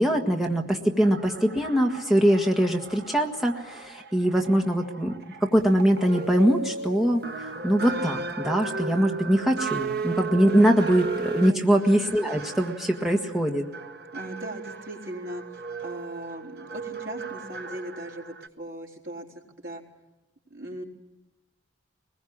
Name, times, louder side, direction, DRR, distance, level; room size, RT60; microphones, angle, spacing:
voice 1, 0.0-5.1 5.4-13.7, equal, ahead, 0 dB, 1.6 m, -23 dB
sound 1, 1.0-18.5, right 3 dB, 55° right, 1.2 m, -36 dB
voice 2, 11.5-11.9 14.1-19.3 19.5-19.8 20.5-20.8, right 1 dB, 70° right, 1 dB, 4.2 m, -38 dB
23.5 x 20.5 x 8.7 m, 1.0 s
head